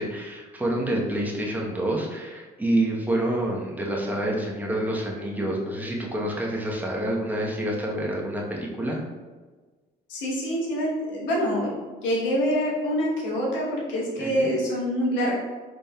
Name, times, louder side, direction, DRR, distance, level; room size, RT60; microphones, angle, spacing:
voice 1, 0.0-9.0 14.2-14.5, right 1 dB, 10° right, -2 dB, 1.0 m, -27 dB
voice 2, 10.1-11.7 12.0-15.4, equal, 80° left, -3 dB, 1.1 m, -25 dB
3.9 x 3.5 x 2.3 m, 1.3 s
supercardioid pair, 65°, 19 cm